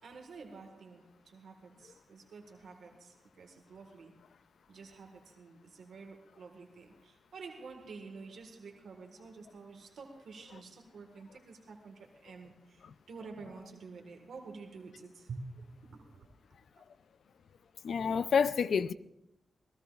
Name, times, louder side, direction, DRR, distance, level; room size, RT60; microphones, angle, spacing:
voice 1, 0.0-4.1 4.7-16.3, right 4 dB, 70° right, 1.6 m, -49 dB
voice 2, 17.8-18.9, left 6 dB, 65° left, 0.5 m, -28 dB
27.5 x 18.0 x 2.4 m
wide cardioid pair, 160°, 0 cm